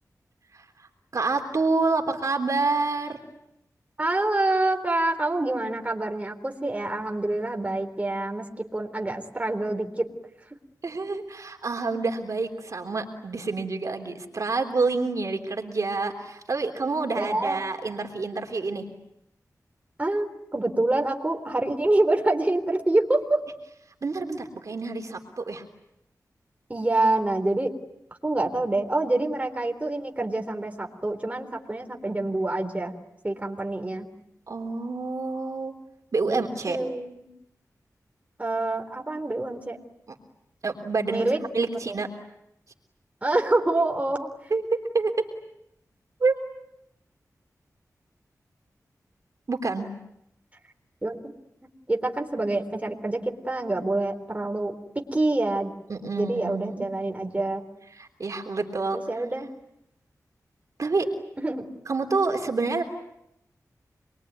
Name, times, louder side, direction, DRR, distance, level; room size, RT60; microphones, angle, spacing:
voice 1, 1.1-3.2 10.8-18.8 24.0-25.6 34.5-35.7 36.1-36.8 40.6-41.3 41.5-42.1 44.5-45.1 46.2-46.4 49.5-49.9 55.9-56.9 57.9-59.0 60.8-61.1 61.8-62.9, right 3 dB, 60° right, 3 dB, 3.4 m, -27 dB
voice 2, 4.0-10.1 17.2-17.6 20.0-23.4 26.7-27.7 28.2-32.9 33.2-34.1 36.3-36.4 36.7-37.3 38.4-39.8 41.1-41.4 41.9-42.0 43.2-44.3 51.0-51.3 51.9-55.7 56.2-57.6 58.9-59.5 61.4-61.7, right 2 dB, 20° right, 3 dB, 3.8 m, -26 dB
27.5 x 22.5 x 9.5 m, 0.82 s
wide cardioid pair, 95°, 6 cm